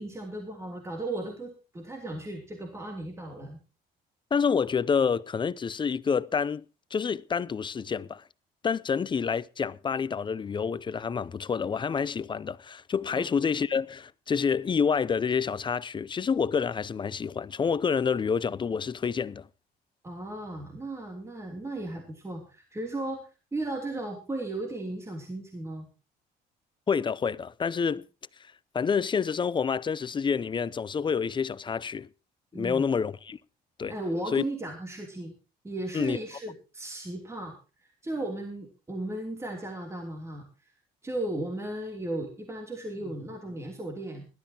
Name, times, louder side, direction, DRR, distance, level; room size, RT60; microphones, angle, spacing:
voice 1, 0.0-3.6 13.2-13.3 20.0-25.9 32.5-32.8 33.9-35.3 35.6-37.5 37.8-40.5 41.0-44.3, right 2 dB, 15° right, 3.0 m, -35 dB
voice 2, 4.3-6.7 6.9-8.2 8.6-19.5 26.9-28.0 28.7-32.1 32.5-33.4 33.8-34.0 34.3-34.4 35.9-36.2, left 6 dB, 30° left, 0.6 m, -28 dB
20.5 x 12.5 x 2.9 m
cardioid pair, 110°, 17 cm